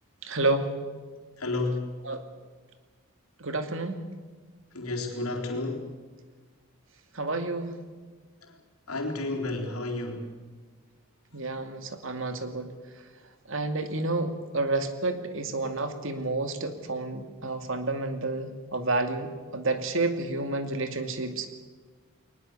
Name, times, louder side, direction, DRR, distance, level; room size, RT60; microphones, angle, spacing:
voice 1, 0.2-0.7 2.1-2.2 3.4-4.0 7.1-7.7 11.3-12.7 13.5-21.5, right 2 dB, 60° right, 8 dB, 2.4 m, -30 dB
voice 2, 1.4-1.9 4.7-5.9 8.4-8.6 8.9-10.3, left 2 dB, 80° left, 1 dB, 4.1 m, -31 dB
22.0 x 20.0 x 8.3 m, 1.4 s
head